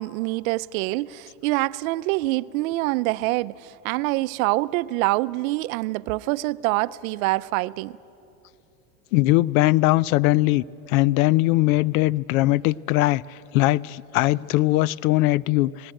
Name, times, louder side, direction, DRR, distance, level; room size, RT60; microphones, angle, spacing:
voice 1, 0.0-8.0, right 19 dB, 75° right, 0.6 m, -25 dB
voice 2, 9.1-15.9, left 18 dB, 75° left, 0.5 m, -20 dB
18.5 x 18.0 x 8.9 m
supercardioid pair, 125°, 42 cm